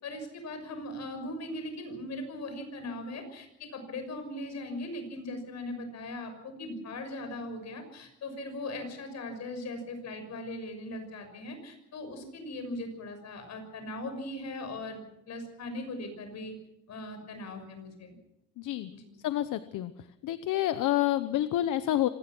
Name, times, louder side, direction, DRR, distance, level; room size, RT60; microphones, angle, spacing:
voice 1, 0.0-15.0 15.3-16.5 16.9-18.1 18.9-19.0, left 1 dB, 60° left, 7 dB, 6.5 m, -39 dB
voice 2, 18.6-18.9 19.2-19.9 20.2-22.1, left 13 dB, 75° left, 12 dB, 1.0 m, -28 dB
25.5 x 18.5 x 6.2 m, 0.85 s
cardioid pair, 125°, 31 cm